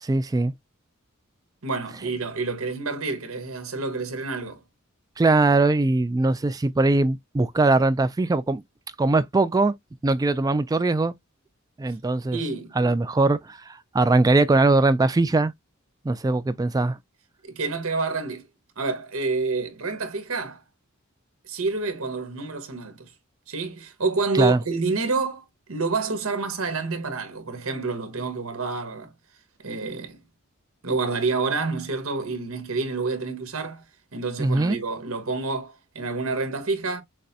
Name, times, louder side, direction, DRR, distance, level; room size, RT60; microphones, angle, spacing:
voice 1, 0.0-0.5 5.2-8.6 9.0-9.7 10.0-11.1 11.8-12.4 12.8-15.5 16.0-17.0 24.4-24.6 34.4-34.8, right 2 dB, 15° right, 0.3 m, -21 dB
voice 2, 1.6-4.6 12.3-12.7 17.4-18.5 18.8-20.6 21.4-23.1 23.5-29.1 29.6-30.2 30.8-33.8 34.1-37.0, right 3 dB, 85° right, 1.3 m, -28 dB
6.4 x 2.1 x 2.7 m
head